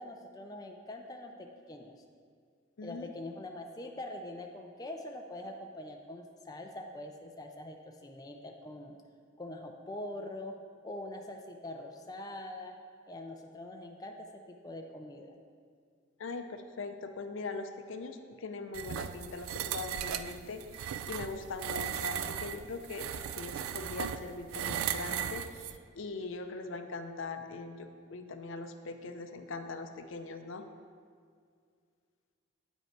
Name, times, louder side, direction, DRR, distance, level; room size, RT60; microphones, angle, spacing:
voice 1, 0.0-1.9 2.8-9.0 9.4-10.6 10.8-12.8 13.1-15.4, left 1 dB, 20° left, 2 dB, 0.4 m, -44 dB
voice 2, 2.8-3.1 16.2-23.1 23.4-25.7 26.0-30.7, left 3 dB, 70° left, 7 dB, 0.5 m, -41 dB
sound 1, 18.7-25.8, right 9 dB, 85° right, 0.3 m, -37 dB
8.6 x 5.3 x 4.6 m, 2.1 s
head